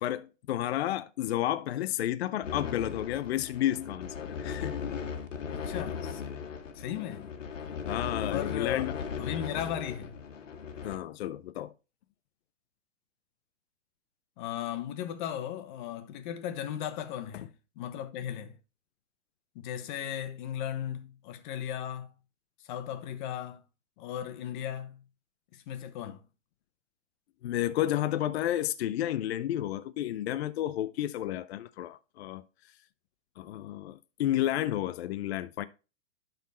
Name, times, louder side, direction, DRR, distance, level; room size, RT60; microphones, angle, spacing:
voice 1, 0.0-4.8 7.0-7.1 7.9-9.0 10.8-11.7 27.4-32.4 33.4-35.6, left 13 dB, 55° left, 0.6 m, -31 dB
sound 1, 2.4-11.0, left 6 dB, 80° left, 1.7 m, -38 dB
voice 2, 5.5-6.2 6.7-7.3 8.3-10.2 14.4-17.5 17.8-18.6 19.5-22.1 22.6-23.6 24.0-25.0 25.5-26.2, left 10 dB, 40° left, 1.2 m, -36 dB
11.5 x 4.2 x 4.2 m
hypercardioid pair, 145°, 37 cm